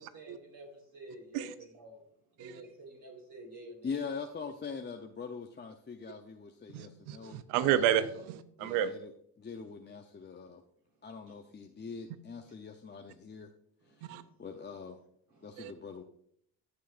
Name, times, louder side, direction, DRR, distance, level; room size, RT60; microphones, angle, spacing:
voice 1, 0.0-2.0 2.4-3.9 12.5-12.6 13.8-14.3 15.3-15.7, right 2 dB, 45° right, 1 dB, 4.2 m, -50 dB
voice 2, 3.8-7.4 8.6-9.1 9.4-10.6 11.0-13.5 14.0-15.0 15.4-16.0, left 5 dB, 20° left, 3 dB, 0.7 m, -43 dB
voice 3, 6.7-8.9 14.1-14.2 15.6-15.7, right 10 dB, 85° right, 13 dB, 0.7 m, -30 dB
15.0 x 6.6 x 2.5 m, 0.68 s
supercardioid pair, 75°, 48 cm